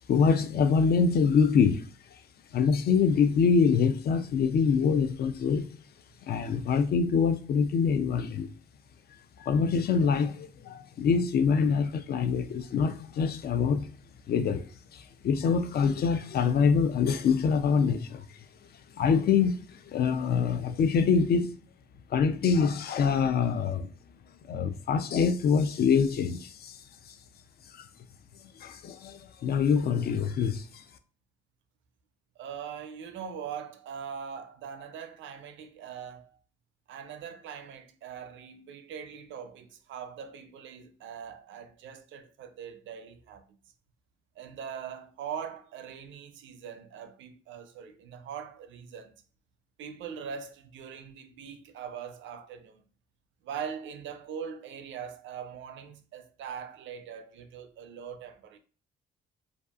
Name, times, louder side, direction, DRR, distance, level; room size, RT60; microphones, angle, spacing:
voice 1, 0.1-1.8 2.5-5.7 6.3-8.5 9.4-13.9 14.3-14.6 15.2-18.2 19.0-21.5 22.1-23.9 24.5-26.7 27.8-27.9 28.6-30.6, left 6 dB, 50° left, 0.4 m, -25 dB
voice 2, 32.4-36.4 36.9-43.5 44.4-49.1 49.8-52.8 53.4-58.6, right 7 dB, 75° right, 0.5 m, -41 dB
2.7 x 2.4 x 2.3 m
cardioid pair, 90°, 20 cm